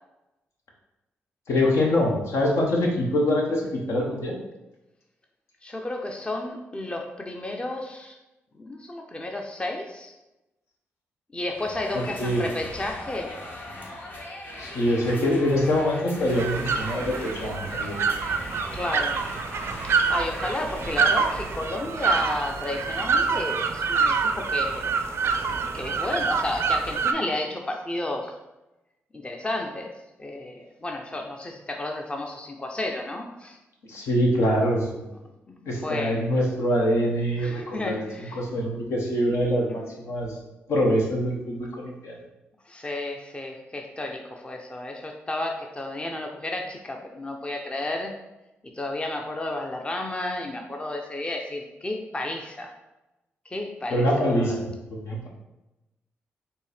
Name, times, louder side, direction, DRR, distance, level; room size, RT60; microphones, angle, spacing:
voice 1, 1.5-4.3 12.2-12.4 14.6-18.0 33.9-35.1 35.7-37.9 38.4-40.3 40.7-42.1 53.9-54.5 55.0-55.3, equal, 75° left, -1 dB, 1.0 m, -24 dB
voice 2, 5.6-8.2 8.5-10.1 11.3-13.3 18.7-19.3 19.8-24.9 25.5-28.4 29.1-33.6 35.5-36.2 37.4-38.5 42.6-48.2 48.6-52.8 53.4-54.6, left 2 dB, 20° left, 2 dB, 0.6 m, -32 dB
sound 1, 11.5-21.9, left 1 dB, 45° left, 1.1 m, -40 dB
sound 2, 16.3-27.1, right 5 dB, 60° right, 0.4 m, -26 dB
4.4 x 2.8 x 3.3 m, 0.97 s
supercardioid pair, 55°, 5 cm